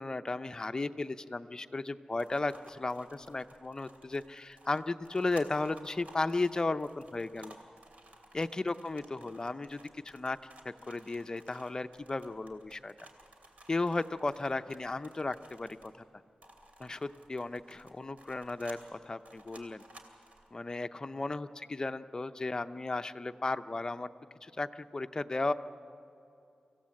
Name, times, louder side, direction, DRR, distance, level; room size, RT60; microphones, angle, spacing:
voice 1, 0.0-7.6 8.3-10.4 10.6-12.9 13.7-16.0 16.8-19.8 20.5-24.1 24.4-25.5, left 2 dB, 30° left, 9 dB, 0.6 m, -35 dB
sound 1, 2.2-16.1 16.4-20.5, right 1 dB, 70° right, 2.8 m, -56 dB
25.0 x 16.0 x 7.7 m, 2.6 s
wide cardioid pair, 95°, 2 cm